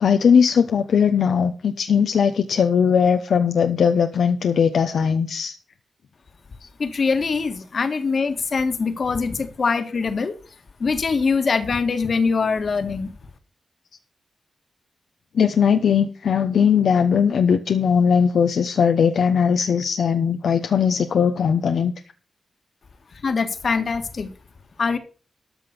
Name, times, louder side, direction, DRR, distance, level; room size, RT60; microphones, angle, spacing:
voice 1, 0.0-5.5 15.3-21.9, left 7 dB, 85° left, 7 dB, 0.8 m, -19 dB
voice 2, 6.8-10.3 10.8-13.1 23.2-24.3 24.8-25.0, left 4 dB, 60° left, 10 dB, 1.7 m, -23 dB
13.0 x 6.0 x 6.7 m, 0.36 s
cardioid pair, 60°, 0 cm